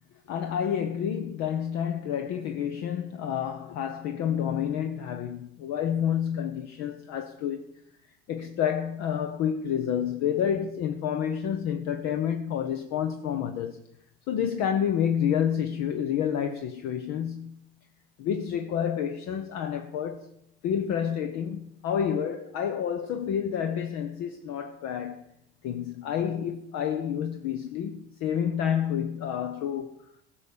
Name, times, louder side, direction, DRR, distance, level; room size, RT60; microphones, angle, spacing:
voice 1, 0.3-7.6 8.3-13.8 14.3-17.5 18.2-20.3 20.6-25.2 25.6-30.0, left 9 dB, 55° left, 0.9 m, -29 dB
16.0 x 5.7 x 6.8 m
hypercardioid pair, 70°, 31 cm